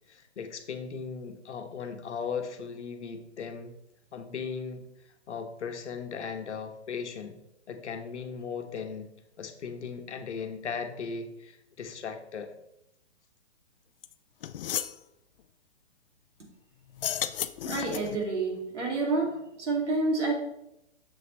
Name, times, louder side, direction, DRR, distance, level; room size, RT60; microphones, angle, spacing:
voice 1, 0.1-3.8 4.1-7.4 7.7-9.1 9.4-12.5, left 6 dB, 75° left, 6 dB, 1.1 m, -37 dB
sound 1, 14.0-14.1 14.4-15.0 16.9-18.2, left 11 dB, 55° left, 0.5 m, -33 dB
voice 2, 17.6-20.3, right 3 dB, 85° right, 0 dB, 2.4 m, -29 dB
7.0 x 6.2 x 3.1 m, 0.83 s
hypercardioid pair, 140°, 34 cm